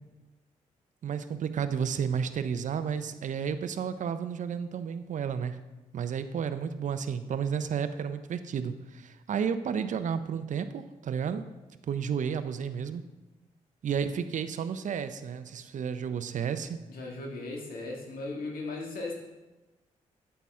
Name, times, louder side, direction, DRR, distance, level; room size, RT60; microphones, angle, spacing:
voice 1, 1.0-5.6 5.9-11.4 11.9-13.0 13.8-16.8, right 7 dB, 55° right, 11 dB, 0.5 m, -32 dB
voice 2, 16.9-19.1, left 2 dB, 75° left, -1 dB, 1.6 m, -37 dB
8.3 x 5.7 x 3.6 m, 1.1 s
supercardioid pair, 45°, 15 cm